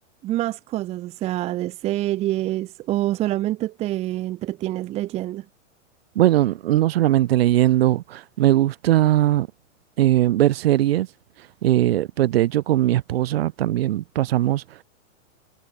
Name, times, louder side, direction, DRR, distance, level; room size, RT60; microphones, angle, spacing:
voice 1, 0.2-5.4, right 15 dB, 15° right, 1.6 m, -26 dB
voice 2, 6.1-9.5 10.0-11.1 11.6-14.6, right 14 dB, 50° right, 3.1 m, -19 dB
supercardioid pair, 175°, 39 cm